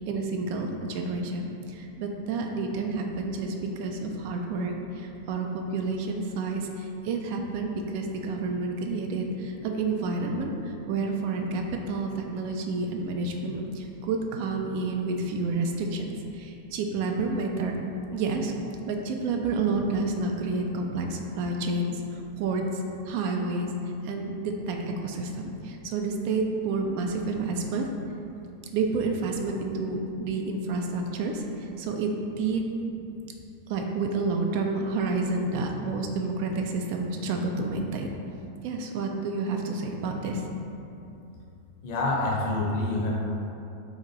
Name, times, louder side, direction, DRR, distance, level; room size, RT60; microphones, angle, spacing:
voice 1, 0.0-16.1 16.3-17.7 18.1-18.5 18.8-22.6 23.1-23.7 24.0-24.8 25.0-27.9 28.7-31.4 31.8-32.1 32.4-32.6 33.7-38.1 38.6-40.4, right 3 dB, 45° right, 2 dB, 0.3 m, -29 dB
voice 2, 41.8-43.3, left 2 dB, 50° left, -3 dB, 0.7 m, -27 dB
3.5 x 2.5 x 3.2 m, 2.7 s
figure-of-eight pair, 90°, 0 cm